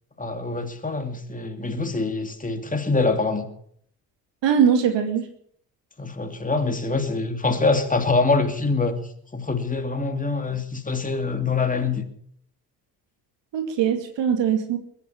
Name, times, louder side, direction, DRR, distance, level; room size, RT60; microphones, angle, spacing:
voice 1, 0.2-3.5 6.0-9.0 9.3-12.1, left 3 dB, 15° left, 2.7 m, -24 dB
voice 2, 4.4-5.3 13.5-14.8, right 8 dB, 60° right, 2.3 m, -21 dB
21.5 x 8.4 x 6.9 m
hypercardioid pair, 55°, 47 cm